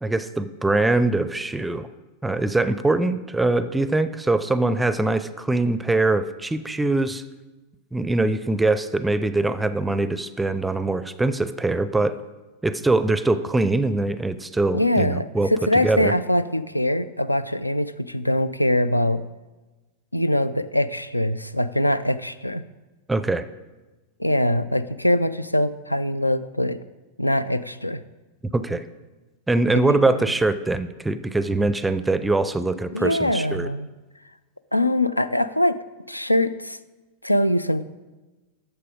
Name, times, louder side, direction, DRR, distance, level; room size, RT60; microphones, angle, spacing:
voice 1, 0.0-1.9 2.2-7.2 7.9-12.2 12.6-16.1 23.1-23.5 28.5-28.8 29.5-33.7, right 2 dB, 5° right, 13 dB, 0.4 m, -23 dB
voice 2, 14.7-19.2 20.1-22.6 24.2-26.8 27.2-28.0 29.7-30.2 32.9-33.9 34.7-35.8 36.1-36.8 37.2-37.8, left 1 dB, 85° left, 14 dB, 0.3 m, -23 dB
8.8 x 6.8 x 5.0 m, 1.2 s
figure-of-eight pair, 90°, 0 cm